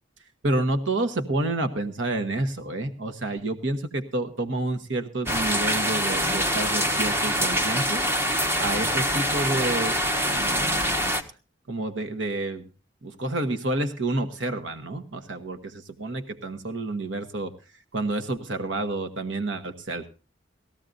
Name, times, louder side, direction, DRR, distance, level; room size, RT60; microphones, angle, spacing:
voice 1, 0.4-8.0 8.6-11.1 11.7-12.6 13.0-17.5 17.9-20.1, right 2 dB, 80° right, 8 dB, 1.2 m, -29 dB
sound 1, 5.3-11.2, equal, 15° right, 1.3 m, -25 dB
19.0 x 15.0 x 2.6 m, 0.35 s
head